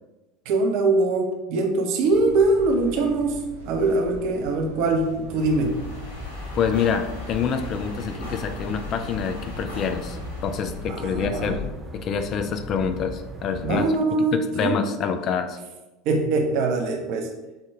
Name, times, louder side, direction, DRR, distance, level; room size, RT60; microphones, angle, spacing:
voice 1, 0.4-5.9 10.9-11.6 13.6-14.8 16.0-17.3, right 3 dB, 50° right, 4 dB, 0.6 m, -23 dB
sound 1, 2.1-11.7, left 2 dB, 85° right, 0.9 m, -40 dB
sound 2, 5.3-11.0, left 1 dB, 70° left, 0.7 m, -42 dB
sound 3, 5.3-13.9, left 1 dB, 15° right, 0.7 m, -38 dB
voice 2, 6.5-10.2 10.4-11.6 11.9-13.8 14.3-15.6, left 6 dB, 40° left, 8 dB, 0.3 m, -26 dB
4.4 x 2.2 x 3.3 m, 1.1 s
figure-of-eight pair, 75°, 0 cm